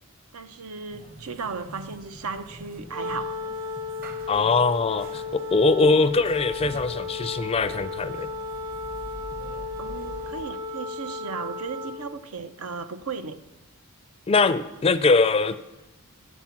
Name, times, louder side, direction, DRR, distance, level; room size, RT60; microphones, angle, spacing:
voice 1, 0.3-3.4 9.8-13.4, right 5 dB, 85° right, 10 dB, 0.7 m, -36 dB
sound 1, 0.9-10.4, equal, 40° right, 1.0 m, -45 dB
Wind instrument woodwind instrument, 2.9-12.1, left 3 dB, 65° right, 1.2 m, -34 dB
voice 2, 4.3-8.3 14.3-15.6, left 3 dB, 25° left, 13 dB, 0.4 m, -22 dB
8.3 x 7.2 x 7.2 m, 1.1 s
head